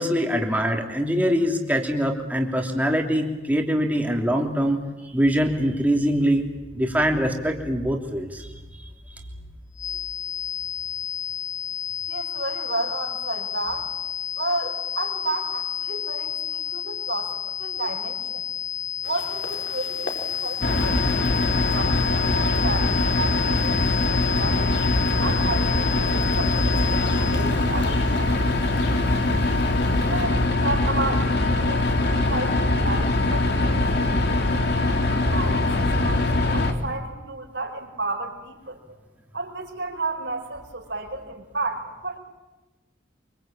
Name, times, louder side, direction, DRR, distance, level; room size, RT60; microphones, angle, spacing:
voice 1, 0.0-4.8 5.1-6.5 6.7-8.5 33.9-34.0, equal, 10° right, 2 dB, 3.1 m, -23 dB
sound 1, 9.8-27.5, left 8 dB, 20° left, 1.8 m, -31 dB
voice 2, 12.1-13.9 14.4-18.4 19.0-21.0 21.7-24.7 25.2-29.4 30.1-34.5 35.1-38.8 39.3-42.2, right 2 dB, 65° right, 0 dB, 5.2 m, -32 dB
sound 2, 19.0-30.2, left 2 dB, 70° left, 5.1 m, -42 dB
sound 3, 20.6-36.7, left 2 dB, 55° left, 3.0 m, -22 dB
26.0 x 25.5 x 8.9 m, 1.1 s
head